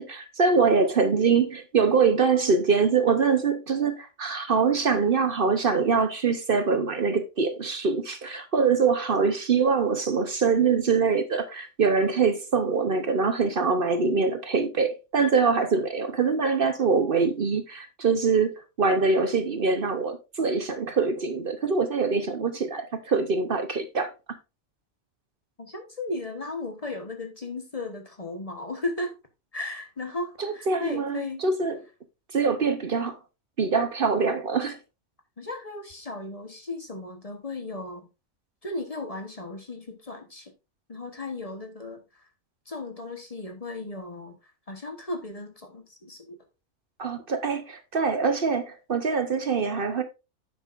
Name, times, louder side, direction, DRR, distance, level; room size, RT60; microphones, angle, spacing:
voice 1, 0.0-18.5 18.8-24.1 30.4-31.8 32.3-33.2 33.6-34.8 47.0-50.0, right 5 dB, 50° right, 1.0 m, -24 dB
voice 2, 25.6-29.1 29.5-31.4 35.4-38.1 38.6-40.5 40.9-42.0 42.7-44.3 44.7-46.4, left 2 dB, 30° left, 1.1 m, -35 dB
10.0 x 7.4 x 2.5 m
omnidirectional pair, 1.3 m